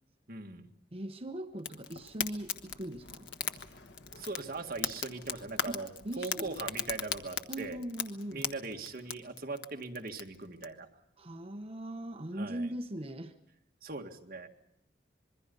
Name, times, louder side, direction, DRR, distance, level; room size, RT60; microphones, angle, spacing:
voice 1, 0.3-0.7 4.2-7.8 8.3-10.9 12.3-12.7 13.8-14.5, right 3 dB, 50° right, 2 dB, 2.0 m, -40 dB
voice 2, 0.9-3.3 5.7-5.8 6.0-6.6 7.5-8.5 11.2-13.3, right 1 dB, 30° right, 7 dB, 1.0 m, -40 dB
Fire, 1.6-10.7, left 7 dB, 75° left, 1.4 m, -39 dB
26.0 x 22.0 x 5.4 m, 0.83 s
head